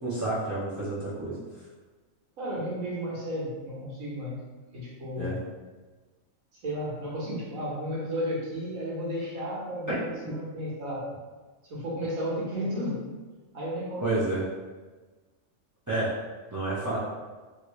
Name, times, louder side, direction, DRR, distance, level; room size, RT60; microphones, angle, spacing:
voice 1, 0.0-1.4 5.2-5.3 9.9-10.0 14.0-14.4 15.9-16.1 16.5-17.0, right 2 dB, 20° right, -10 dB, 0.5 m, -29 dB
voice 2, 2.4-4.4 4.7-5.4 6.5-11.1 11.7-13.0 13.5-14.2, equal, 85° right, -7 dB, 1.5 m, -33 dB
3.2 x 2.6 x 3.1 m, 1.3 s
omnidirectional pair, 1.4 m